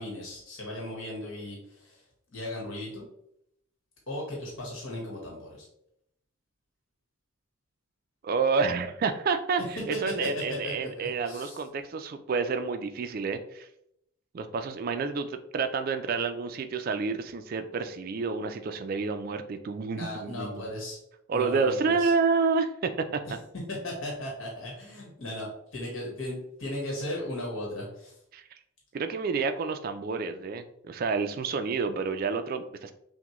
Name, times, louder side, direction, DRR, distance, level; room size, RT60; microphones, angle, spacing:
voice 1, 0.0-2.0 2.3-3.0 4.1-5.7 9.9-11.6 19.9-21.0 21.3-22.1 23.7-28.2, left 1 dB, 70° left, -2 dB, 1.2 m, -36 dB
voice 2, 8.2-13.7 14.3-20.6 21.3-23.4 28.3-28.4 28.9-32.9, right 4 dB, 45° right, 8 dB, 0.3 m, -29 dB
5.9 x 2.1 x 3.0 m, 0.76 s
head